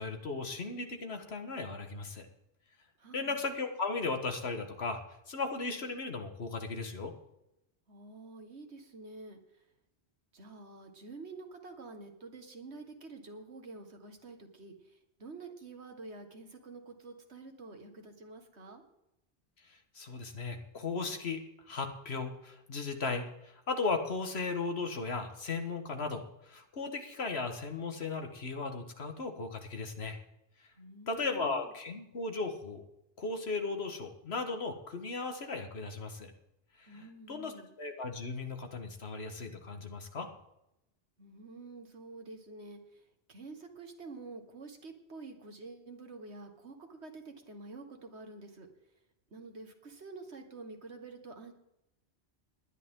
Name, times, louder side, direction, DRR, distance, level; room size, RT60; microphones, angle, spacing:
voice 1, 0.0-2.3 3.1-5.0 5.3-7.1 20.0-21.4 21.7-30.2 31.1-32.8 33.2-36.3 36.8-37.5 37.8-40.3, left 4 dB, 70° left, 5 dB, 1.8 m, -36 dB
voice 2, 3.0-3.4 7.9-9.4 10.3-18.8 30.8-31.7 36.9-37.7 41.2-43.0 43.3-48.7 49.3-51.5, right 3 dB, 75° right, 5 dB, 2.0 m, -48 dB
20.0 x 11.0 x 3.8 m, 0.87 s
omnidirectional pair, 1.1 m